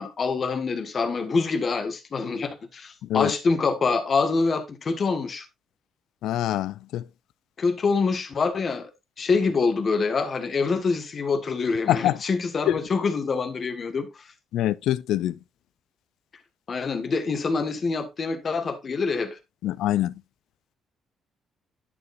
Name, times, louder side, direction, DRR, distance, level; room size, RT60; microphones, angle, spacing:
voice 1, 0.0-5.4 7.6-8.9 9.2-14.1 16.7-19.4, left 4 dB, 45° left, 1.6 m, -25 dB
voice 2, 3.0-3.3 6.2-7.0 11.9-12.2 12.7-12.8 14.5-15.4 19.6-20.1, left 13 dB, 85° left, 0.4 m, -25 dB
10.5 x 6.8 x 2.5 m
cardioid pair, 90°, 0 cm